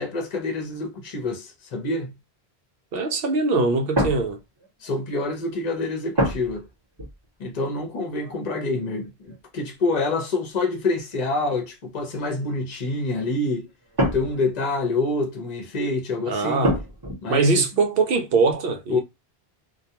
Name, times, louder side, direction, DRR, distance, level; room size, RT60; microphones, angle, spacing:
voice 1, 0.0-2.1 4.8-6.6 7.4-13.7 14.1-16.7 17.2-17.7 18.9-19.0, left 2 dB, 45° left, 0.8 m, -27 dB
voice 2, 2.9-4.4 16.3-16.8 17.3-19.0, right 3 dB, 65° right, 0.7 m, -22 dB
sound 1, 3.9-5.1 6.2-6.7 7.0-7.3 8.2-9.4 10.3-10.4 10.8-11.6 13.5-14.6 16.6-17.1, equal, 25° right, 0.9 m, -27 dB
2.2 x 2.2 x 2.8 m
omnidirectional pair, 1.1 m